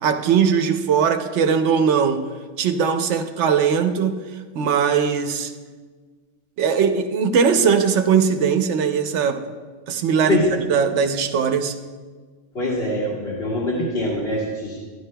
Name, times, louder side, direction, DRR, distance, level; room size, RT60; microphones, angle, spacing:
voice 1, 0.0-2.3 2.6-4.2 4.5-5.5 6.6-9.5 9.9-11.8, right 6 dB, 80° right, 7 dB, 0.9 m, -20 dB
voice 2, 12.5-14.8, left 1 dB, 60° left, -6 dB, 2.1 m, -23 dB
12.5 x 11.0 x 2.2 m, 1.5 s
omnidirectional pair, 1.2 m